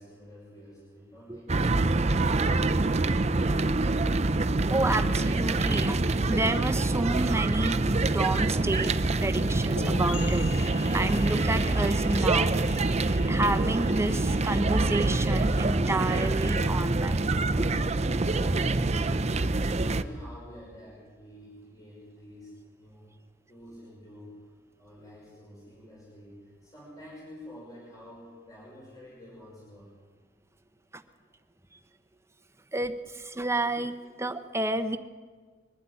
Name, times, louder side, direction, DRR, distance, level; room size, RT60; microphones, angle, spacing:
voice 1, 0.0-1.5 19.6-23.0 23.5-24.5 24.8-29.9, equal, 20° left, -5 dB, 5.8 m, -48 dB
sound 1, 1.5-20.0, right 2 dB, 35° right, 0.7 m, -26 dB
voice 2, 4.7-8.9 9.2-12.5 13.3-17.7 18.8-19.1 30.9-31.0 32.7-35.0, right 2 dB, 15° right, 9 dB, 1.0 m, -30 dB
sound 2, 9.8-17.3, left 6 dB, 85° left, 1.8 m, -45 dB
22.5 x 12.0 x 9.8 m, 1.5 s
head